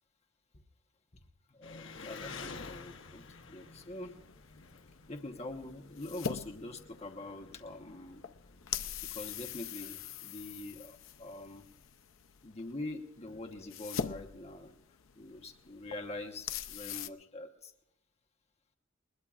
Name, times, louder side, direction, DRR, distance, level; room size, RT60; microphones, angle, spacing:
voice 1, 1.5-4.2 5.1-8.2 9.1-11.6 12.4-14.7 15.1-17.7, left 2 dB, 35° left, 3 dB, 1.1 m, -44 dB
Engine, 1.6-11.8, left 4 dB, 70° left, 1.1 m, -51 dB
sound 1, 2.9-17.1, left 7 dB, 90° left, 0.6 m, -44 dB
21.0 x 20.5 x 2.5 m, 0.85 s
head